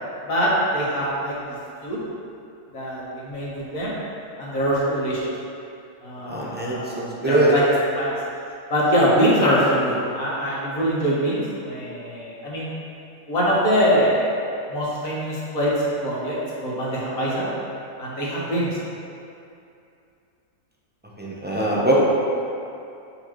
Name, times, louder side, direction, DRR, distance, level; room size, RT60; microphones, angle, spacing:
voice 1, 0.3-1.3 1.8-2.0 2.7-3.9 4.4-5.3 6.0-7.6 8.0-8.1 8.7-12.7 13.3-14.2 14.7-15.7 16.0-17.5 18.0-18.7, equal, 85° left, -7 dB, 1.8 m, -23 dB
voice 2, 6.3-7.5 21.2-22.0, right 1 dB, 10° right, -6 dB, 0.5 m, -22 dB
8.5 x 4.2 x 3.0 m, 2.6 s
omnidirectional pair, 1.4 m